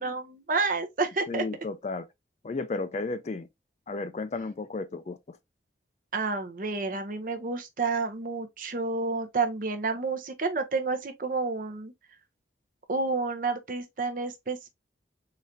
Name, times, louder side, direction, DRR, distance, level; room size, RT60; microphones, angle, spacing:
voice 1, 0.0-1.4 6.1-11.9 12.9-14.7, right 3 dB, 45° right, 0.7 m, -30 dB
voice 2, 1.3-2.1 2.4-3.5 3.9-5.4, left 3 dB, 35° left, 0.4 m, -33 dB
4.0 x 3.2 x 2.6 m
head